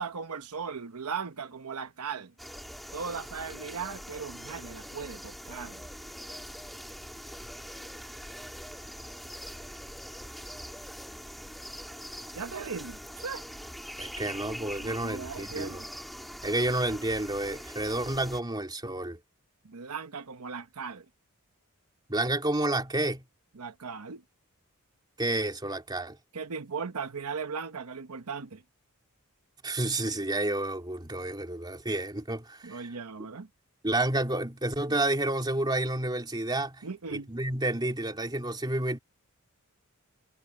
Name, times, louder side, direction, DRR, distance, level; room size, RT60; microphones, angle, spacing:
voice 1, 0.0-2.3 2.9-5.8 12.3-13.4 14.8-15.8 19.6-21.1 23.5-24.2 26.3-28.6 32.6-33.5 36.8-37.3, right 5 dB, 85° right, 1.0 m, -38 dB
sound 1, 2.4-18.4, equal, ahead, 3.0 m, -43 dB
voice 2, 14.0-15.8 16.4-19.2 22.1-23.2 25.2-26.2 29.6-32.8 33.8-36.8 37.1-39.0, right 2 dB, 20° right, 3.1 m, -30 dB
head